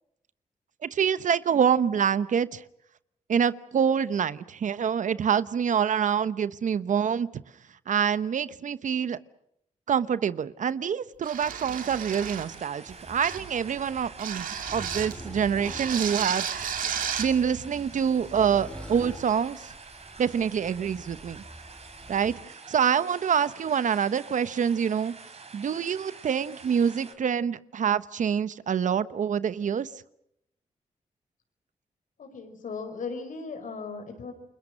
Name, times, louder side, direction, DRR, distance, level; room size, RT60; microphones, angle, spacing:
voice 1, 0.8-2.6 3.3-7.3 7.9-9.2 9.9-16.5 17.2-19.7 20.2-21.4 22.1-22.3 22.7-25.1 25.5-29.9, right 7 dB, 65° right, 0.9 m, -26 dB
sound 1, 11.2-12.6 13.2-13.5 14.2-15.2 15.6-17.3, right 8 dB, 90° right, 2.4 m, -33 dB
sound 2, 11.7-27.1, right 4 dB, 50° right, 3.8 m, -47 dB
sound 3, 12.9-22.3, equal, 5° left, 4.4 m, -45 dB
voice 2, 32.2-34.3, left 4 dB, 75° left, 5.1 m, -37 dB
29.5 x 22.0 x 6.4 m
cardioid pair, 65°, 14 cm